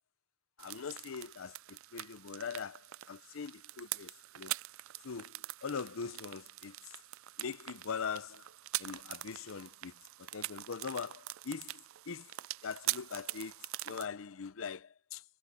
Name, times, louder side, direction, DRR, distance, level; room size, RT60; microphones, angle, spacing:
voice 1, 0.6-4.5 5.0-6.9 7.4-8.5 8.8-12.3 12.6-15.2, left 6 dB, 80° left, 0.6 m, -42 dB
sound 1, 0.6-14.1, right 16 dB, 85° right, 0.4 m, -43 dB
head